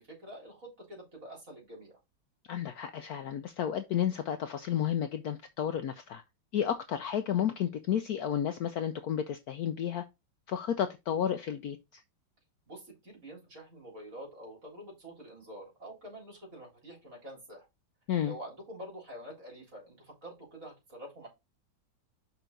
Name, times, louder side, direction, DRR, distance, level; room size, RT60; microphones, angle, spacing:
voice 1, 0.0-2.0 12.7-17.7 18.2-21.3, right 1 dB, 45° right, 4.2 m, -47 dB
voice 2, 2.5-6.2 6.5-10.0 10.5-12.0 18.1-18.3, left 9 dB, 70° left, 0.9 m, -32 dB
6.0 x 5.6 x 3.9 m
omnidirectional pair, 2.0 m